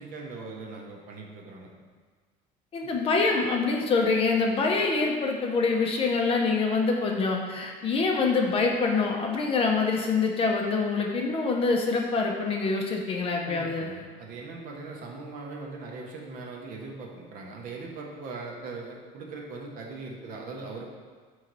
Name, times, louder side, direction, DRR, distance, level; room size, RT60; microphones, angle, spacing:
voice 1, 0.0-1.7 13.5-20.9, right 3 dB, 50° right, 0 dB, 0.7 m, -40 dB
voice 2, 2.7-13.9, left 4 dB, 30° left, 1 dB, 0.5 m, -25 dB
4.2 x 3.1 x 3.8 m, 1.5 s
cardioid pair, 145°, 18 cm